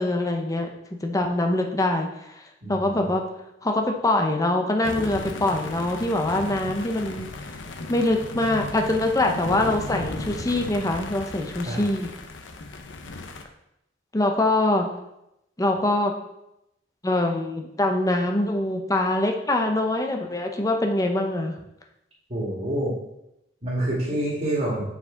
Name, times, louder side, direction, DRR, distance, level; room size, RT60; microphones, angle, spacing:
voice 1, 0.0-2.4 2.7-3.2 3.6-7.3 7.9-12.1 14.1-14.9 15.6-16.1 17.0-21.5, left 1 dB, 20° left, 3 dB, 0.8 m, -24 dB
voice 2, 2.6-3.1 11.6-11.8 22.3-22.9 23.6-24.8, right 1 dB, 35° right, -5 dB, 2.0 m, -27 dB
sound 1, 4.8-13.4, left 3 dB, 85° left, 0.7 m, -36 dB
8.1 x 4.8 x 3.9 m, 0.85 s
head